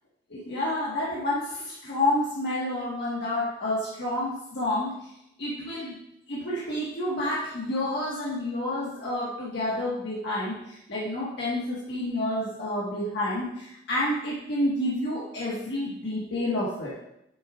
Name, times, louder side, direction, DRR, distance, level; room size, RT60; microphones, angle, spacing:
voice 1, 0.3-5.1 5.4-6.0 6.3-16.9, left 1 dB, 65° left, -7 dB, 1.6 m, -29 dB
8.6 x 7.9 x 2.5 m, 0.81 s
head